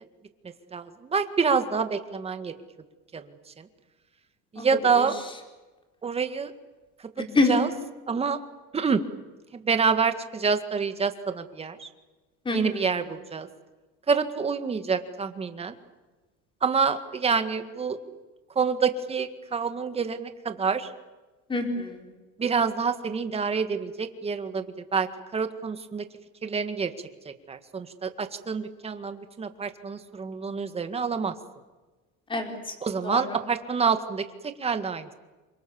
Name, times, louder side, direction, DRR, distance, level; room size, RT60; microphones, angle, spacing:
voice 1, 0.7-2.5 3.1-3.7 4.5-5.2 6.0-6.5 7.5-7.7 8.1-8.4 8.7-9.0 9.5-11.9 12.5-13.5 14.1-15.8 16.6-18.2 18.6-20.9 22.4-26.0 26.4-26.9 27.3-31.3 32.8-35.1, right 5 dB, 20° right, 9 dB, 1.9 m, -27 dB
voice 2, 12.4-12.9 21.5-22.1 32.3-32.7 33.0-33.2, left 3 dB, 15° left, 3 dB, 4.4 m, -26 dB
28.0 x 25.0 x 7.2 m, 1.2 s
cardioid pair, 150°, 29 cm